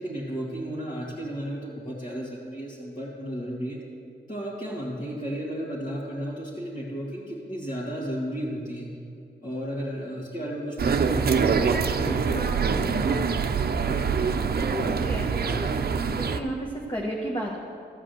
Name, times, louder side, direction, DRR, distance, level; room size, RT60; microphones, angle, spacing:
voice 1, 0.0-3.8 4.3-8.9 9.4-13.3, equal, 45° left, -7 dB, 2.2 m, -33 dB
sound 1, 10.8-16.4, right 5 dB, 60° right, 0.6 m, -25 dB
voice 2, 14.2-15.7 16.1-17.6, right 1 dB, 25° left, -2 dB, 1.3 m, -33 dB
13.5 x 5.0 x 7.8 m, 2.4 s
wide cardioid pair, 80°, 18 cm